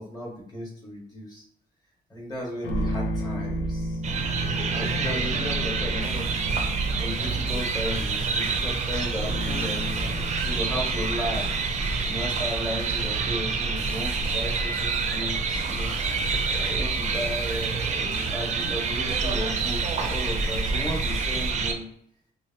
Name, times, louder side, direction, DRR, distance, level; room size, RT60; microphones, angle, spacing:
voice 1, 0.0-1.4 2.1-4.0 4.5-6.6 7.0-10.0 10.4-11.5 12.0-15.9 16.5-21.9, equal, 20° left, -3 dB, 1.0 m, -35 dB
sound 1, 2.6-14.0, right 1 dB, 90° left, 0.5 m, -33 dB
sound 2, 4.0-21.7, right 4 dB, 40° right, 0.4 m, -27 dB
sound 3, 6.0-21.5, equal, 70° left, 1.1 m, -41 dB
2.8 x 2.1 x 2.6 m, 0.67 s
cardioid pair, 120°, 18 cm